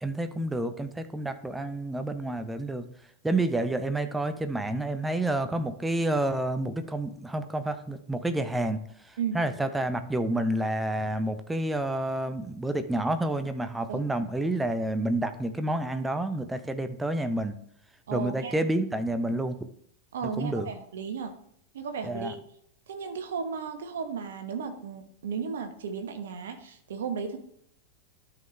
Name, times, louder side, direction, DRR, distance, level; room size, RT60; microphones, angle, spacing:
voice 1, 0.0-2.9 3.2-17.6 18.1-19.6 20.4-20.7 22.0-22.3, right 1 dB, 5° right, 9 dB, 0.7 m, -29 dB
voice 2, 18.1-18.6 20.1-21.3 21.7-22.4 22.9-27.4, right 6 dB, 60° right, 7 dB, 1.2 m, -34 dB
12.5 x 5.5 x 3.3 m, 0.69 s
figure-of-eight pair, 90°, 0 cm